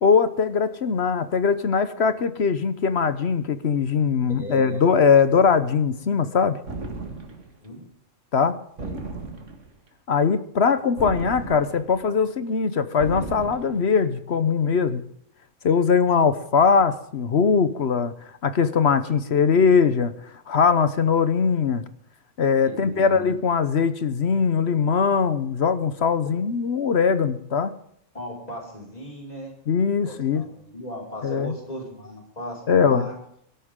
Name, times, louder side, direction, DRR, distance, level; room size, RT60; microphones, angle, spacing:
voice 1, 0.0-6.6 8.3-8.6 10.1-15.0 15.6-18.1 18.4-20.1 20.5-21.8 22.4-27.7 29.7-30.4 31.2-31.5 32.7-33.1, left 6 dB, 60° left, 13 dB, 1.1 m, -21 dB
voice 2, 4.4-4.8 7.6-7.8 8.8-9.0 22.8-23.4 28.1-29.5 30.0-33.1, equal, 30° left, -1 dB, 5.6 m, -37 dB
sound 1, 6.7-7.5 8.8-9.8 11.0-12.0 13.0-13.9, right 3 dB, 70° right, 2.4 m, -35 dB
23.0 x 12.5 x 3.7 m, 0.67 s
omnidirectional pair, 1.3 m